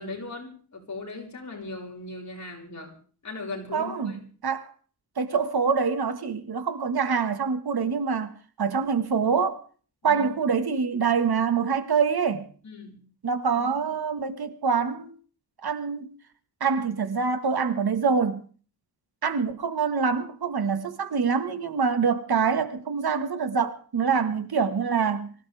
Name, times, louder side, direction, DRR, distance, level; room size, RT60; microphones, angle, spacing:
voice 1, 0.0-2.9 3.2-4.2 10.0-10.3 12.6-13.0 13.6-13.7 24.1-24.3, left 3 dB, 45° left, 6.3 m, -38 dB
voice 2, 3.7-4.1 4.4-4.7 5.2-8.3 8.6-9.6 10.0-12.5 13.2-15.1 15.6-16.1 16.6-18.4 19.2-25.3, right 5 dB, 65° right, 1.9 m, -25 dB
25.0 x 16.0 x 3.6 m
wide cardioid pair, 120°, 40 cm